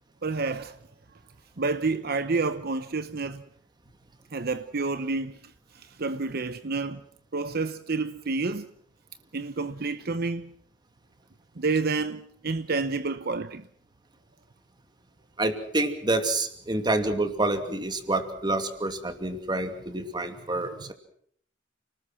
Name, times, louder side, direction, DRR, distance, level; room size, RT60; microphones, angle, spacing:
voice 1, 0.2-0.8 1.6-3.4 4.3-7.0 7.3-8.7 9.3-10.5 11.6-13.7, right 3 dB, 55° right, 0.9 m, -29 dB
voice 2, 15.4-20.9, right 2 dB, 25° right, 2.6 m, -28 dB
29.5 x 19.5 x 6.2 m
head